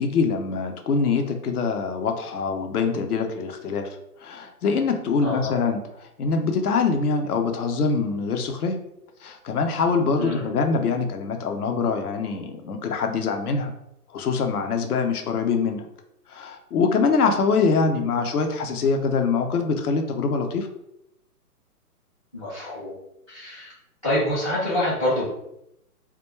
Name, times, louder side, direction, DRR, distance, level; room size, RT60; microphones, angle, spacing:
voice 1, 0.0-3.9 4.2-8.8 9.2-13.7 14.1-15.8 16.3-20.7, left 4 dB, 70° left, 5 dB, 0.6 m, -24 dB
voice 2, 5.2-5.6 10.2-10.5 22.3-22.9 23.3-23.7 24.0-25.2, left 1 dB, 25° left, -11 dB, 0.4 m, -26 dB
2.2 x 2.1 x 3.0 m, 0.80 s
hypercardioid pair, 145°, 47 cm